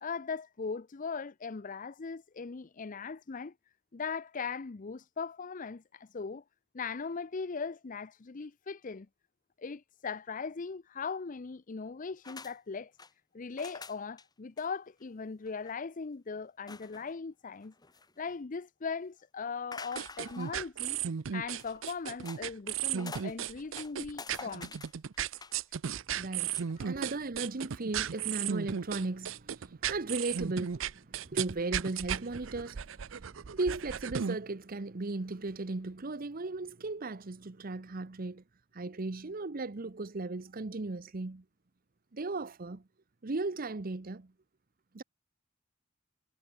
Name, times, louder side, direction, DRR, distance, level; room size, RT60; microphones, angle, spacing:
voice 1, 0.0-3.5 3.9-6.4 6.7-9.1 9.6-12.9 13.3-17.7 18.2-21.0 21.3-24.8 26.8-26.9, left 5 dB, 40° left, 0.6 m, -39 dB
sound 1, 12.2-12.5 12.8-13.1 13.6-14.2 14.6-14.7 15.0-15.1 15.5-15.7 16.7-17.1 17.6-18.3 19.7-20.6 21.5-22.4 22.8-23.4 23.7-25.6 26.4-26.7, left 4 dB, 20° left, 1.6 m, -47 dB
sound 2, 20.0-34.4, right 8 dB, 80° right, 0.6 m, -35 dB
voice 2, 26.1-38.4 38.7-41.4 42.1-42.8 43.2-44.3 44.9-45.0, right 3 dB, 45° right, 0.8 m, -36 dB
head